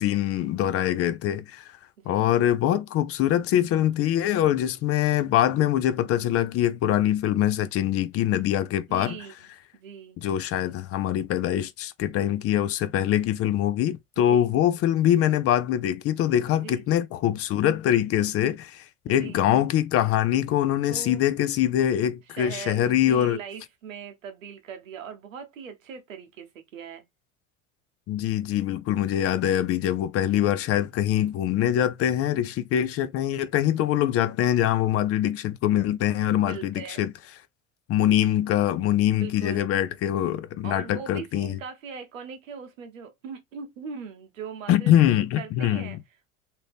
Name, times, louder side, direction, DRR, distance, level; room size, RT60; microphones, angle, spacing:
voice 1, 0.0-1.7 2.1-9.2 10.2-23.4 28.1-37.1 37.9-41.6 44.7-46.0, left 11 dB, 40° left, 0.4 m, -23 dB
voice 2, 2.0-2.3 8.9-9.3 9.7-10.2 14.2-14.5 16.6-16.8 19.1-19.4 20.9-21.2 22.3-27.0 36.4-37.0 39.2-39.7 40.6-44.9 45.4-46.0, right 6 dB, 85° right, 0.9 m, -40 dB
2.7 x 2.6 x 3.4 m
hypercardioid pair, 75°, 39 cm